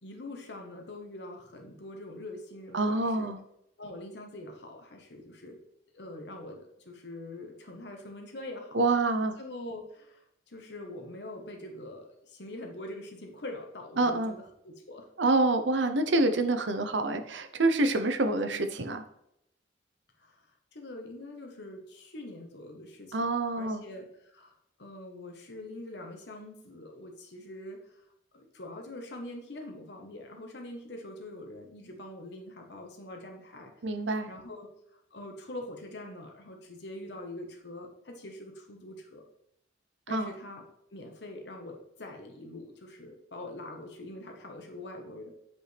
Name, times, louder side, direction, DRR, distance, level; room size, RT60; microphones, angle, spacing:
voice 1, 0.0-3.3 3.8-5.6 5.9-8.8 9.4-10.2 10.5-15.1 18.5-18.7 20.2-20.4 20.7-24.5 24.8-27.8 28.3-33.7 34.3-34.7 35.1-39.2 40.1-40.6 40.9-45.3, left 1 dB, 65° left, 2 dB, 1.2 m, -44 dB
voice 2, 2.7-3.4 8.7-9.3 14.0-14.3 15.2-19.0 23.1-23.8 33.8-34.3 40.1-40.3, right 2 dB, 75° right, 8 dB, 0.8 m, -27 dB
8.7 x 5.3 x 3.4 m, 0.76 s
head